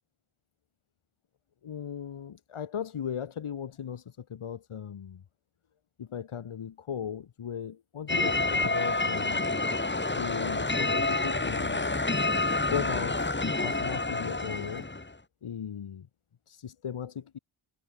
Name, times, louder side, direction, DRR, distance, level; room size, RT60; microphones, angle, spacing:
voice 1, 1.6-5.2 6.0-9.5 10.1-12.0 12.7-14.9 15.4-16.1 16.6-17.4, left 8 dB, 85° left, 3.4 m, -37 dB
sound 1, 8.1-15.1, left 2 dB, 20° left, 5.2 m, -28 dB
wide cardioid pair, 95°, 48 cm